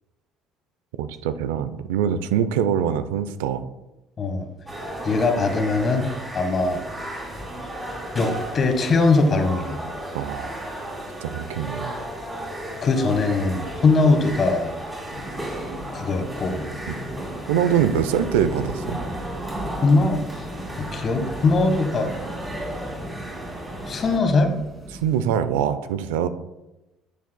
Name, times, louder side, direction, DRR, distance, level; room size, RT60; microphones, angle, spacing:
voice 1, 1.0-3.6 10.1-10.5 11.2-11.9 16.9-17.0 17.5-19.0 24.9-26.3, right 9 dB, 85° right, 12 dB, 0.4 m, -23 dB
voice 2, 4.2-4.5 5.0-6.1 6.3-6.8 8.1-9.8 12.8-14.7 15.9-16.6 19.8-20.4 20.8-22.1 23.9-24.6, left 3 dB, 40° left, 6 dB, 1.3 m, -21 dB
sound 1, 4.7-24.2, right 1 dB, 20° right, 2.8 m, -35 dB
sound 2, 15.1-25.2, right 1 dB, 35° right, 2.5 m, -36 dB
10.0 x 7.2 x 2.2 m, 1.0 s
hypercardioid pair, 75°, 0 cm